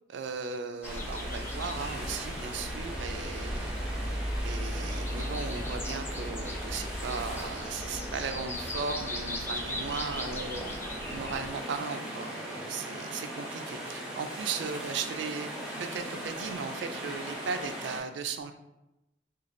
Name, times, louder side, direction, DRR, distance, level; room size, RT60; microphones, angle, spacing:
voice 1, 0.1-3.8 4.4-10.7 11.1-15.5 15.8-18.5, right 5 dB, 75° right, 8 dB, 0.3 m, -37 dB
sound 1, 0.8-11.5, equal, 15° left, 0.3 m, -37 dB
sound 2, 0.8-18.0, right 1 dB, 5° right, 0.8 m, -39 dB
3.7 x 2.4 x 3.1 m, 0.94 s
head